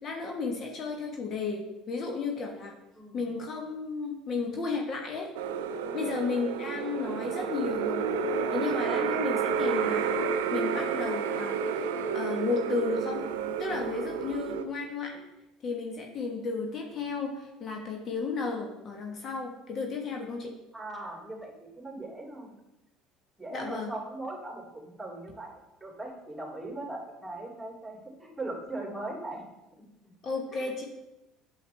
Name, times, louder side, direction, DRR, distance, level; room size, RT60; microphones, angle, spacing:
voice 1, 0.0-2.7 3.1-5.3 5.9-8.1 8.5-10.2 10.5-13.2 13.6-15.2 15.6-20.5 23.5-23.9 30.2-30.9, left 4 dB, 45° left, 1 dB, 1.3 m, -33 dB
sound 1, 5.3-14.6, right 6 dB, 75° right, 0.5 m, -30 dB
voice 2, 5.8-6.1 20.7-22.5 23.4-25.5 25.8-29.4 30.5-30.7, right 2 dB, 10° right, -1 dB, 2.8 m, -39 dB
8.8 x 7.0 x 3.3 m, 0.95 s
hypercardioid pair, 65°, 0 cm